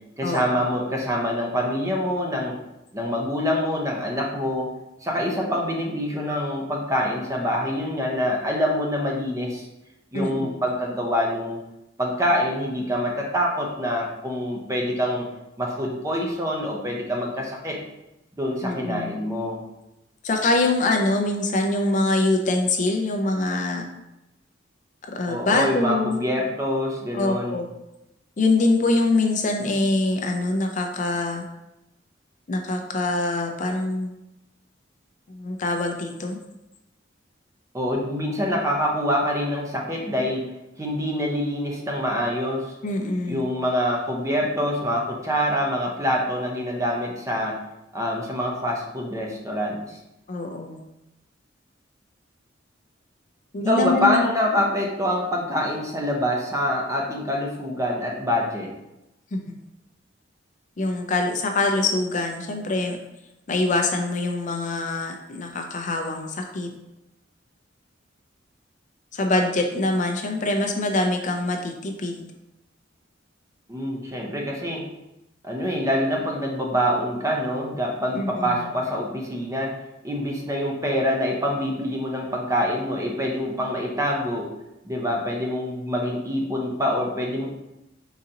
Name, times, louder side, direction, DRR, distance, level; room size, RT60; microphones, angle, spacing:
voice 1, 0.2-2.6 2.9-4.7 5.0-9.7 10.1-11.6 12.0-15.3 15.6-17.8 18.4-19.6 25.3-27.6 37.7-40.5 40.8-42.8 43.3-47.6 47.9-50.0 53.7-58.7 73.7-74.8 75.4-79.8 80.0-84.5 84.8-87.5, equal, 15° right, -1 dB, 0.6 m, -25 dB
voice 2, 10.1-10.5 18.6-19.1 20.2-23.9 25.1-26.2 27.1-27.7 28.4-31.4 32.5-34.1 35.3-36.4 42.8-43.5 50.3-50.8 53.5-54.2 59.3-59.4 60.8-63.0 63.5-66.7 69.1-72.3 78.1-78.5, left 2 dB, 40° left, 3 dB, 0.4 m, -24 dB
3.9 x 3.8 x 2.8 m, 0.91 s
head